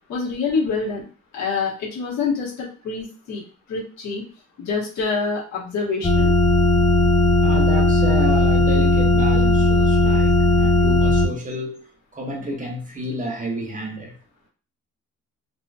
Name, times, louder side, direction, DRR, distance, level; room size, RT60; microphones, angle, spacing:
voice 1, 0.1-1.0 1.3-3.4 3.7-4.2 4.6-6.3, left 4 dB, 65° left, 1.1 m, -26 dB
sound 1, 6.0-11.3, left 2 dB, 10° left, 0.3 m, -17 dB
voice 2, 7.4-14.1, right 1 dB, 25° right, 0.7 m, -30 dB
2.7 x 2.4 x 2.3 m
cardioid pair, 90°, 30 cm